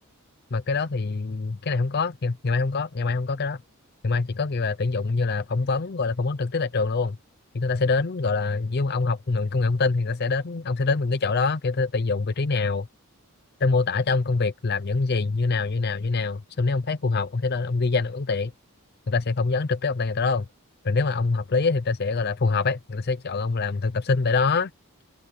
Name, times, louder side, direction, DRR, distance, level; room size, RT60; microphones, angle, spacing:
voice 1, 0.5-3.6 4.0-7.2 7.5-12.9 13.6-18.5 19.1-20.5 20.8-24.7, left 4 dB, 45° left, 0.6 m, -25 dB
head